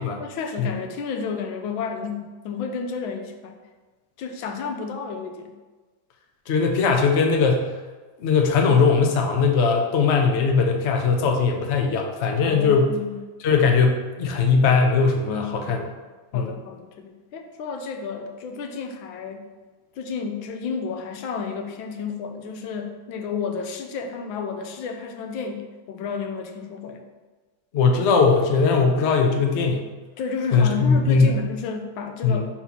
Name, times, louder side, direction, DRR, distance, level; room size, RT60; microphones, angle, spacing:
voice 1, 0.2-3.6 4.2-5.5 12.5-13.2 15.3-15.7 16.3-19.5 20.0-27.0 30.2-32.5, left 5 dB, 80° left, 5 dB, 1.4 m, -31 dB
voice 2, 6.5-7.7 8.2-12.9 13.4-15.8 16.3-16.5 27.7-29.9 30.5-31.4 32.2-32.4, left 5 dB, 65° left, 2 dB, 0.6 m, -20 dB
5.7 x 4.4 x 4.0 m, 1.3 s
omnidirectional pair, 2.1 m